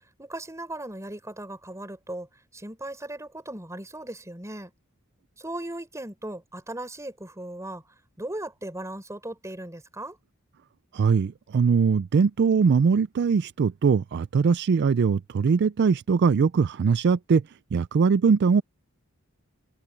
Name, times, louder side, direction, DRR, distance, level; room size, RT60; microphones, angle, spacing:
voice 1, 0.2-2.3 2.5-4.7 5.4-7.8 8.2-10.2, right 1 dB, 15° right, 5.2 m, -37 dB
voice 2, 10.9-17.4 17.7-18.6, right 5 dB, 55° right, 0.4 m, -21 dB
head